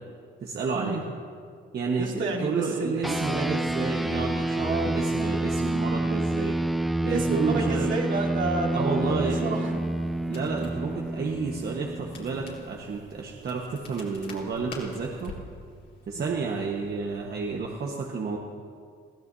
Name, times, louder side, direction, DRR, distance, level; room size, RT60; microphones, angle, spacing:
voice 1, 0.4-1.1 1.7-6.6 7.0-7.9 8.7-9.6 10.3-15.3 16.1-18.4, right 4 dB, 55° right, -1 dB, 1.3 m, -31 dB
voice 2, 2.0-3.6 4.6-4.9 7.1-9.8 16.1-16.4, right 3 dB, 70° right, -2 dB, 2.7 m, -30 dB
sound 1, 3.0-12.8, right 1 dB, ahead, 0.4 m, -28 dB
Crackle, 9.6-17.6, left 2 dB, 60° left, 4.1 m, -47 dB
22.5 x 15.5 x 2.7 m, 2.1 s
cardioid pair, 90°, 20 cm